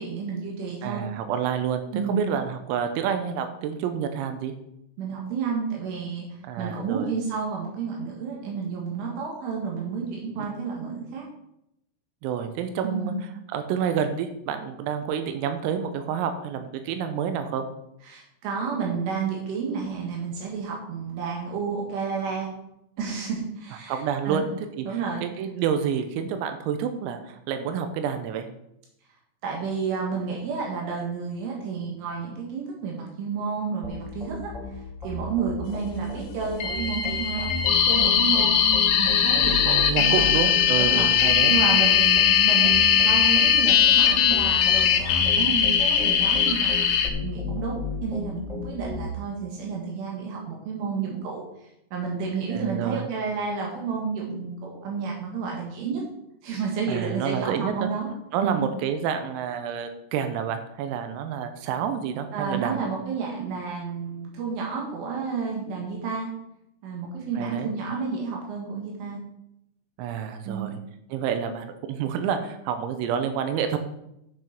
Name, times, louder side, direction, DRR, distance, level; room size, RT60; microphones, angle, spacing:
voice 1, 0.0-1.0 1.9-2.3 5.0-6.3 6.6-11.3 12.8-13.2 18.0-22.5 23.0-24.5 24.9-25.3 29.4-40.2 40.8-41.1 41.5-46.8 47.2-51.4 51.9-56.0 56.4-58.1 58.4-58.7 62.3-66.3 66.8-69.2 70.5-70.8, right 5 dB, 70° right, -1 dB, 4.1 m, -31 dB
voice 2, 0.8-1.8 2.1-4.5 6.4-7.1 10.4-10.5 12.2-13.1 13.5-17.7 23.9-24.4 24.8-28.5 39.4-41.6 52.5-53.1 56.9-57.9 58.3-62.8 67.4-67.7 70.0-70.8 71.1-73.8, right 8 dB, 90° right, 8 dB, 3.6 m, -29 dB
sound 1, 33.8-49.1, left 3 dB, ahead, 2.4 m, -35 dB
sound 2, 36.6-47.1, left 8 dB, 80° left, 3.3 m, -20 dB
9.3 x 7.0 x 6.0 m, 0.81 s
omnidirectional pair, 5.9 m